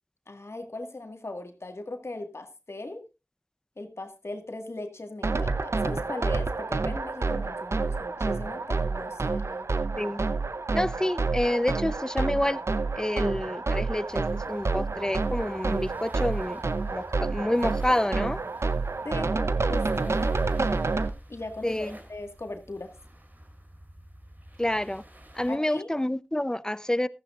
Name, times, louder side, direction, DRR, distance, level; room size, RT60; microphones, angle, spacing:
voice 1, 0.3-3.0 3.8-9.7 19.0-19.3 19.7-20.2 21.3-22.9 25.5-25.9, left 2 dB, 75° left, 1.8 m, -39 dB
sound 1, 5.2-21.1, right 3 dB, 90° right, 0.6 m, -28 dB
voice 2, 10.7-12.6 12.9-16.6 16.9-18.4 21.6-22.0 24.6-25.0 25.3-27.1, left 1 dB, 15° left, 0.6 m, -28 dB
sound 2, 14.1-25.5, right 1 dB, 40° right, 2.7 m, -50 dB
15.5 x 13.5 x 2.5 m
wide cardioid pair, 40°, 5 cm